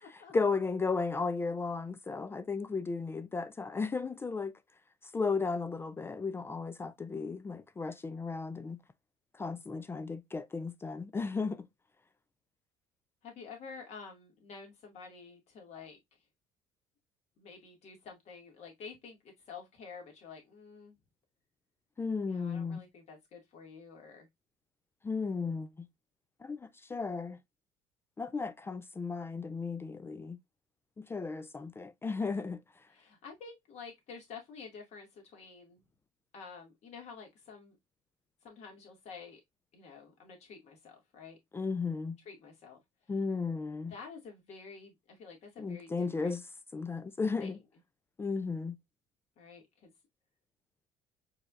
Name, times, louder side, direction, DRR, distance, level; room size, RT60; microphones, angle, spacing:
voice 1, 0.3-4.5 5.1-8.8 9.4-11.7 22.0-22.8 25.0-25.7 26.4-26.6 26.9-27.4 28.2-30.4 31.0-32.6 41.5-42.2 43.1-43.9 45.6-46.4 46.7-47.6 48.2-48.8, left 4 dB, 15° left, 0.3 m, -34 dB
voice 2, 13.2-16.0 17.4-21.0 22.0-24.3 32.9-35.8 36.3-37.8 38.4-39.4 39.7-41.4 42.2-42.8 43.9-46.4 47.4-47.6 49.4-49.9, left 5 dB, 55° left, 2.1 m, -49 dB
4.7 x 3.3 x 2.4 m
cardioid pair, 105°, 13 cm